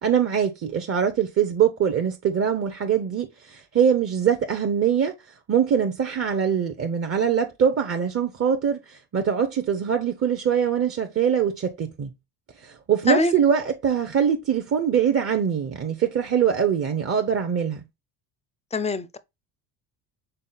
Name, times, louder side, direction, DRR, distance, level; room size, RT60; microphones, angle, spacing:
voice 1, 0.0-5.1 5.5-12.1 12.6-17.8, right 8 dB, 30° right, 0.7 m, -23 dB
voice 2, 18.7-19.2, left 3 dB, 15° left, 0.5 m, -23 dB
5.6 x 3.8 x 2.3 m
supercardioid pair, 70°, 48 cm